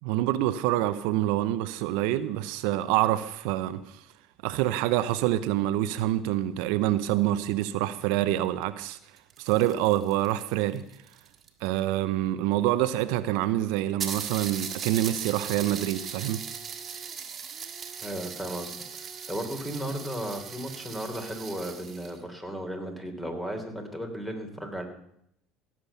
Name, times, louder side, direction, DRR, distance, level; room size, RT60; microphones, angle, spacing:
voice 1, 0.0-4.0 4.4-9.0 9.4-10.8 11.6-16.5, right 14 dB, 75° right, 0.7 m, -26 dB
sound 1, 9.0-11.8 12.7-12.8 13.0-13.1 13.4-13.5 14.0-22.2, right 7 dB, 35° right, 2.0 m, -39 dB
voice 2, 18.0-18.7 19.3-24.8, equal, 10° left, 3.2 m, -35 dB
16.5 x 7.4 x 6.9 m
supercardioid pair, 90°, 0 cm